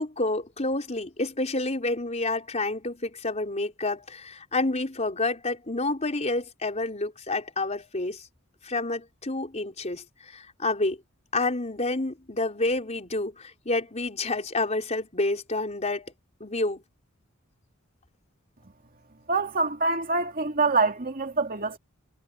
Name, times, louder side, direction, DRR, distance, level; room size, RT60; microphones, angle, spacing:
voice 1, 0.0-8.3 8.6-11.0 11.3-16.1 16.4-16.8, left 2 dB, 35° left, 4.1 m, -29 dB
voice 2, 19.3-21.8, right 3 dB, 45° right, 2.6 m, -25 dB
head